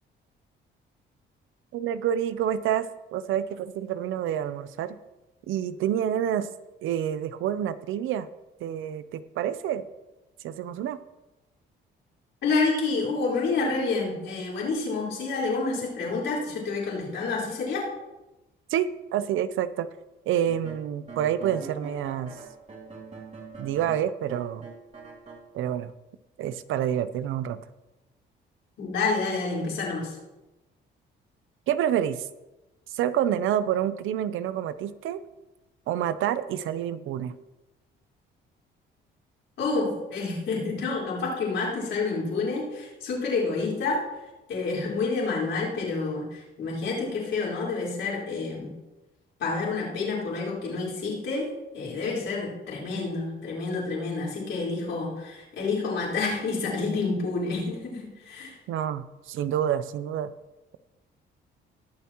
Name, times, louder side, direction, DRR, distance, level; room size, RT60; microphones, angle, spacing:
voice 1, 1.7-5.0 5.5-6.5 6.8-8.3 8.6-9.8 10.4-11.0 18.7-19.9 20.3-22.4 23.6-24.6 25.5-25.9 26.4-27.6 31.7-32.3 32.9-35.2 35.9-37.3 58.7-60.3, right 10 dB, 85° right, 14 dB, 0.6 m, -28 dB
voice 2, 12.4-17.9 28.8-30.1 39.6-44.0 44.5-48.7 49.4-51.5 51.7-58.5, left 3 dB, 70° left, -5 dB, 4.3 m, -28 dB
sound 1, 20.5-25.4, right 4 dB, 35° right, 2.8 m, -43 dB
20.0 x 7.2 x 3.0 m, 1.1 s
cardioid pair, 90°, 20 cm